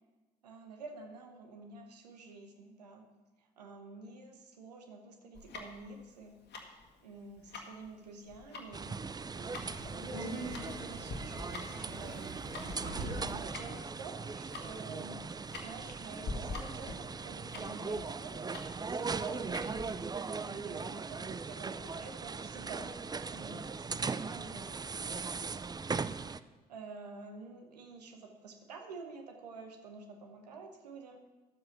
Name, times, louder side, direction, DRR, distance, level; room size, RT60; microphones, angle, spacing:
voice 1, 0.4-3.1 3.4-6.4 7.0-9.0 9.4-12.6 12.9-18.4 18.9-25.2 26.7-31.2, right 3 dB, 90° right, 4 dB, 1.0 m, -49 dB
Tick-tock, 5.3-20.0, left 3 dB, 55° left, 1.6 m, -47 dB
sound 1, 8.7-26.4, right 4 dB, 20° right, 0.4 m, -39 dB
Subway metro underground, 9.3-13.6, right 1 dB, 60° right, 3.5 m, -43 dB
11.0 x 7.6 x 5.8 m, 1.2 s
hypercardioid pair, 50°, 20 cm